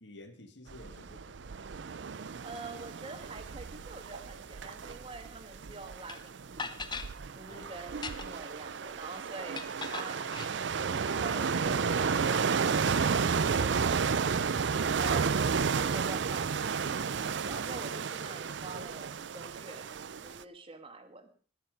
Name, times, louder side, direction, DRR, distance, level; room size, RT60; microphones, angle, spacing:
voice 1, 0.0-1.7 7.5-7.7, left 2 dB, 70° left, 8 dB, 2.0 m, -52 dB
sound 1, 0.7-20.4, right 6 dB, 70° right, 0.5 m, -32 dB
voice 2, 2.4-6.8 7.4-10.3 14.8-15.3 15.7-19.9 20.2-21.3, right 3 dB, 30° right, 6 dB, 1.8 m, -46 dB
sound 2, 6.1-6.2 6.6-7.1 7.9-8.5 9.5-10.5, left 4 dB, 25° left, 0.9 m, -39 dB
sound 3, 11.3-17.5, right 1 dB, ahead, 3.6 m, -53 dB
21.0 x 7.0 x 5.2 m, 0.42 s
head